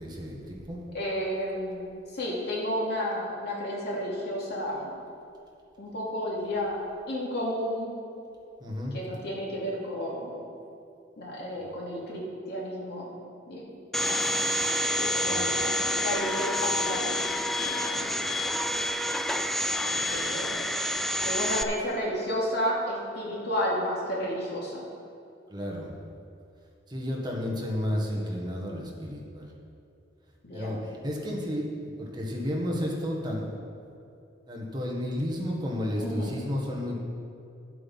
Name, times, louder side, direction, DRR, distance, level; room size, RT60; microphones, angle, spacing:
voice 1, 0.0-0.8 8.6-8.9 15.3-15.5 25.5-25.9 26.9-29.5 30.5-33.5 34.5-37.0, equal, 25° right, -2 dB, 1.6 m, -32 dB
voice 2, 0.9-4.9 5.8-6.8 7.1-7.9 8.9-10.4 11.2-13.1 13.5-13.6 14.0-14.6 15.0-17.3 17.6-18.1 19.8-20.6 21.2-24.8 30.4-30.8 36.0-36.4, equal, 60° left, -4 dB, 2.7 m, -32 dB
Domestic sounds home sounds, 13.9-21.6, left 1 dB, ahead, 0.3 m, -28 dB
11.5 x 8.1 x 5.6 m, 2.6 s
head